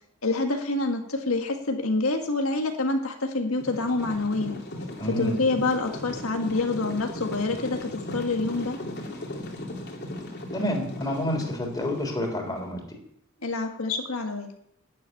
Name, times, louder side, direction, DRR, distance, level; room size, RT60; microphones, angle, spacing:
voice 1, 0.2-4.6 5.2-8.8 13.4-14.5, left 3 dB, 90° left, 4 dB, 1.7 m, -27 dB
sound 1, 3.6-12.7, left 1 dB, 55° left, 2.8 m, -37 dB
voice 2, 5.0-5.4 10.5-13.0, equal, 20° left, 1 dB, 3.8 m, -29 dB
12.0 x 8.4 x 9.6 m, 0.74 s
head